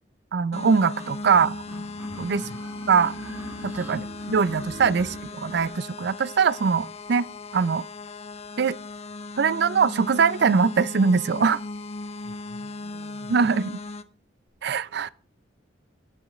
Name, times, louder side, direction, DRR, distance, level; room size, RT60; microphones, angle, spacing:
voice 1, 0.3-1.6 2.2-2.4 2.9-3.1 3.6-7.2 7.5-7.9 8.6-8.8 9.4-11.6 13.3-13.8 14.6-15.1, right 5 dB, 60° right, 0.4 m, -22 dB
sound 1, 0.5-14.0, left 2 dB, 35° left, 0.6 m, -37 dB
sound 2, 1.0-5.8, right 1 dB, 10° right, 2.0 m, -43 dB
voice 2, 12.2-13.4, left 1 dB, 75° left, 4.9 m, -48 dB
17.0 x 6.2 x 3.2 m
head